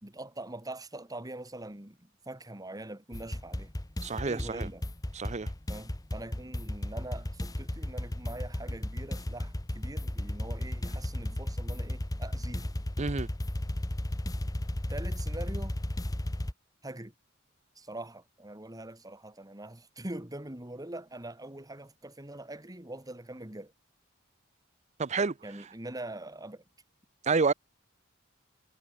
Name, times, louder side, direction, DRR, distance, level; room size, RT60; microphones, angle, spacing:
voice 1, 0.0-3.7 4.1-4.9 5.7-12.7 14.9-15.8 16.8-17.1 17.8-23.7 25.4-26.6, right 1 dB, 20° right, 2.3 m, -43 dB
sound 1, 3.1-16.5, left 1 dB, 20° left, 1.0 m, -34 dB
voice 2, 4.0-4.7 5.1-5.5 13.0-13.3 25.0-25.3 27.2-27.5, right 4 dB, 35° right, 0.6 m, -28 dB
head